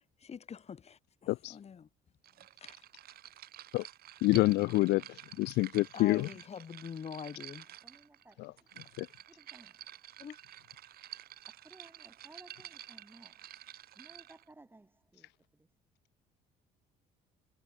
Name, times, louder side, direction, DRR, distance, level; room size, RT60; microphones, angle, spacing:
voice 1, 0.0-1.9 2.6-2.8 5.9-7.7 10.2-10.4, left 7 dB, 40° left, 5.7 m, -45 dB
sound 1, 2.2-14.5, right 13 dB, 65° right, 2.6 m, -51 dB
voice 2, 4.2-5.0 5.4-6.3 8.4-8.5 9.0-9.1, left 20 dB, 85° left, 0.7 m, -27 dB
voice 3, 7.8-8.7 9.3-9.8 11.6-13.5 14.0-15.3 15.6-15.7, right 2 dB, 10° right, 5.7 m, -58 dB
cardioid pair, 110°, 17 cm